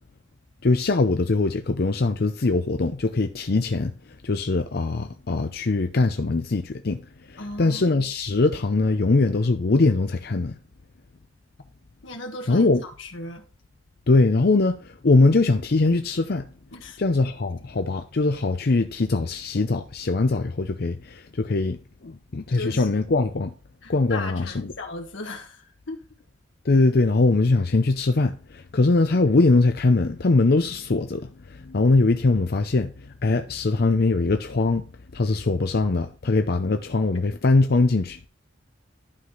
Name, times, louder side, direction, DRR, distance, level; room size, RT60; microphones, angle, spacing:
voice 1, 0.6-3.9 4.2-7.0 7.3-10.5 12.5-12.8 14.1-16.5 17.0-21.8 22.0-23.5 23.9-24.7 26.7-32.9 33.2-34.8 35.1-38.2, left 3 dB, 55° left, 0.6 m, -22 dB
voice 2, 7.4-7.8 12.0-13.4 16.7-17.0 22.5-22.9 23.8-26.0, left 2 dB, 80° left, 1.7 m, -36 dB
11.5 x 4.9 x 3.9 m
head